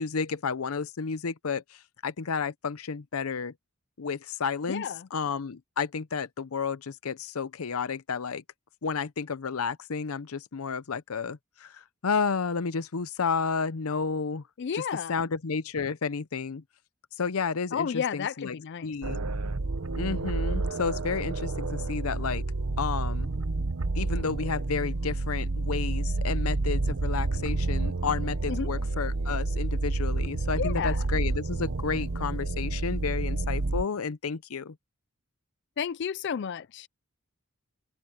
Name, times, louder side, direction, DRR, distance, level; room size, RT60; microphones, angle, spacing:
voice 1, 0.0-3.5 4.0-8.4 8.8-14.4 14.7-14.8 15.1-16.6 17.2-18.6 18.8-19.2 19.9-22.4 22.8-23.3 23.9-34.7, left 5 dB, 85° left, 0.7 m, -31 dB
voice 2, 4.7-5.1 14.6-15.2 17.7-18.9 28.5-28.7 30.6-31.1 35.8-36.9, left 7 dB, 55° left, 0.4 m, -32 dB
sound 1, 19.0-33.8, right 2 dB, 85° right, 0.9 m, -29 dB
head